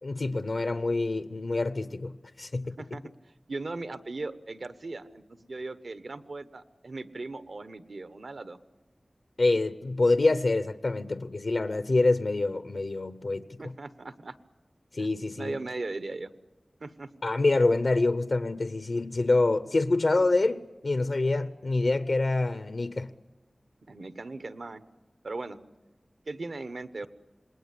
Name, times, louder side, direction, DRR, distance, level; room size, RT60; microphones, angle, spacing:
voice 1, 0.0-3.0 9.4-13.5 14.9-15.6 17.2-23.1, left 2 dB, 80° left, 11 dB, 0.8 m, -26 dB
voice 2, 3.5-8.6 13.6-14.3 15.0-15.1 15.4-16.3 16.8-17.1 23.9-24.8 25.2-25.6 26.3-27.1, right 3 dB, 85° right, 11 dB, 1.1 m, -38 dB
27.5 x 20.5 x 8.4 m, 1.1 s
wide cardioid pair, 55°, 0 cm